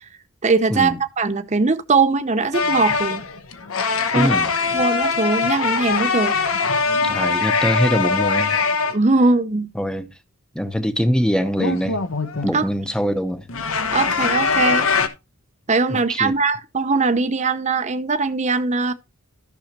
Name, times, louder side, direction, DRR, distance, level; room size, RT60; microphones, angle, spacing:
voice 1, 0.4-3.2 4.1-4.3 4.7-6.4 8.9-9.7 12.5-12.7 13.9-14.9 15.7-18.9, right 3 dB, 35° right, 0.7 m, -20 dB
sound 1, 2.5-9.0 11.6-12.5 13.5-15.1, left 5 dB, 70° left, 1.1 m, -22 dB
voice 2, 4.1-4.5 7.0-8.6 9.7-10.1 10.5-12.0 12.4-13.5 15.9-16.3, equal, 5° left, 0.8 m, -23 dB
13.5 x 6.3 x 2.9 m
head